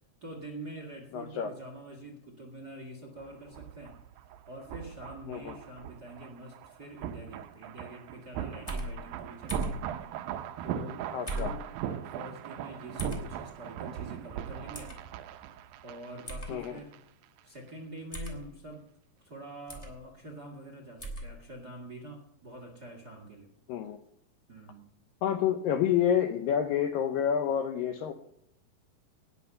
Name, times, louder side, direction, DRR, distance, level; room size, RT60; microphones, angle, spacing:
voice 1, 0.2-4.0 4.5-9.8 10.6-14.9 15.8-17.0 17.4-18.8 19.2-23.5 24.5-24.8, right 1 dB, 40° right, 2 dB, 1.5 m, -46 dB
voice 2, 1.1-1.5 5.3-5.6 11.1-11.5 16.5-16.7 23.7-24.0 25.2-28.1, left 9 dB, 80° left, 7 dB, 2.1 m, -28 dB
sound 1, 3.2-17.0 17.2-17.4, right 10 dB, 80° right, 2.1 m, -40 dB
sound 2, 8.7-8.9 9.5-9.8 11.3-11.6 13.0-13.2 14.7-15.0 16.3-16.5 18.1-18.4 19.7-19.9 21.0-21.3, right 1 dB, 10° left, 2.0 m, -36 dB
18.5 x 7.0 x 6.6 m, 0.75 s
omnidirectional pair, 4.8 m